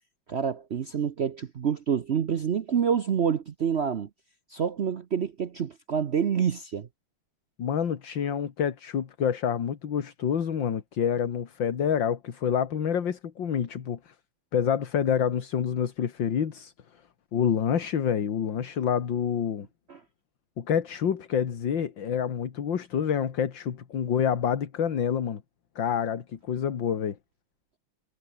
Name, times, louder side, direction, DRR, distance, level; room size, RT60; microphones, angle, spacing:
voice 1, 0.3-4.1 4.5-6.9 19.9-20.0, right 7 dB, 60° right, 0.6 m, -27 dB
voice 2, 7.6-14.1 14.5-16.7 17.3-19.7 20.6-25.4 25.8-27.2, left 8 dB, 70° left, 2.4 m, -27 dB
omnidirectional pair, 2.2 m